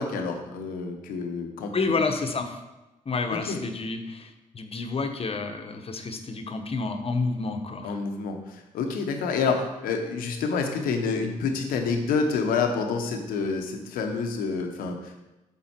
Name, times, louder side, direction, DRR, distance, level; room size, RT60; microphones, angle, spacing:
voice 1, 0.0-2.0 3.3-3.6 7.8-15.2, left 4 dB, 90° left, 4 dB, 0.8 m, -28 dB
voice 2, 1.7-2.6 3.1-7.9, left 3 dB, 45° left, 6 dB, 0.9 m, -29 dB
7.3 x 3.8 x 4.4 m, 1.0 s
supercardioid pair, 55°, 14 cm